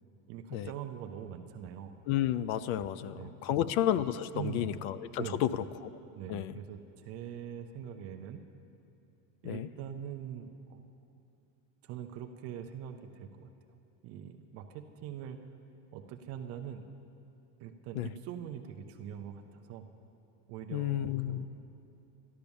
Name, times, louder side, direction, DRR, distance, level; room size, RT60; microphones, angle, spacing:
voice 1, 0.3-1.9 3.0-3.6 4.3-4.8 5.2-5.4 6.1-8.4 9.4-10.8 11.8-13.5 14.0-15.4 15.9-16.9 17.6-19.9 20.5-21.5, right 9 dB, 35° right, 6 dB, 0.4 m, -43 dB
voice 2, 2.1-6.0 6.3-6.6 9.4-9.7 17.9-18.1 20.7-21.5, left 11 dB, 60° left, 16 dB, 0.5 m, -32 dB
12.0 x 12.0 x 6.9 m, 2.7 s
cardioid pair, 165°, 49 cm